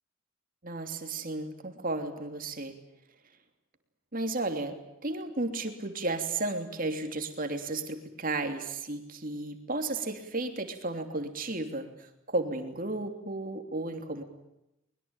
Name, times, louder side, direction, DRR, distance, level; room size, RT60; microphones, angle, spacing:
voice 1, 0.6-2.7 4.1-4.8 5.0-14.2, right 2 dB, 40° right, 6 dB, 3.1 m, -33 dB
24.0 x 21.5 x 9.0 m, 0.86 s
head